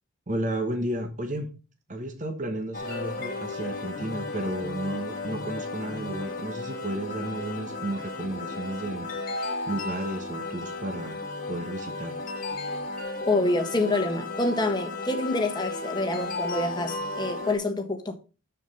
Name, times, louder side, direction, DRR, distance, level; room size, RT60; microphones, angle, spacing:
voice 1, 0.3-1.6 1.9-12.2, right 1 dB, 35° right, 1.2 m, -33 dB
sound 1, 2.7-17.5, left 3 dB, 40° left, 1.8 m, -34 dB
voice 2, 13.2-18.2, left 2 dB, 20° left, 1.4 m, -27 dB
7.1 x 7.0 x 5.5 m
head